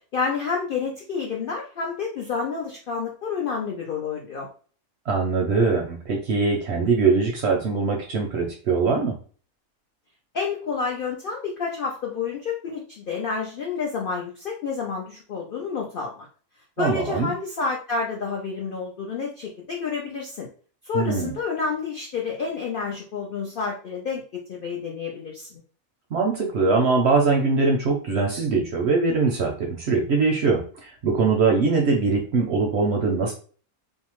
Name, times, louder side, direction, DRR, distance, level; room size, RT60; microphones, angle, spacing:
voice 1, 0.1-4.5 10.3-16.3 16.8-20.5 20.9-24.2 24.5-25.5, left 5 dB, 75° left, -1 dB, 0.5 m, -29 dB
voice 2, 5.1-9.2 16.8-17.3 20.9-21.3 26.1-30.6 31.0-33.3, right 4 dB, 65° right, 1 dB, 0.7 m, -22 dB
2.7 x 2.1 x 2.9 m, 0.40 s
omnidirectional pair, 1.5 m